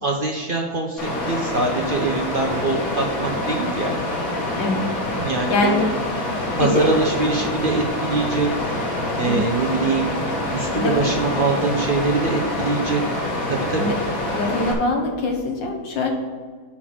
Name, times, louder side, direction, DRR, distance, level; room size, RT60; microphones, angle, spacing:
voice 1, 0.0-3.9 5.2-5.8 6.6-8.5 9.1-10.1 10.5-13.0 13.5-13.9, right 3 dB, 60° right, 2 dB, 0.5 m, -23 dB
Water, 1.0-14.7, left 1 dB, 45° left, 2.4 m, -26 dB
voice 2, 4.6-4.9 5.5-5.9 6.6-6.9 9.3-9.4 10.7-11.0 13.8-13.9 14.3-16.1, left 2 dB, 70° left, 2 dB, 2.1 m, -23 dB
10.5 x 4.1 x 6.1 m, 1.5 s
omnidirectional pair, 2.1 m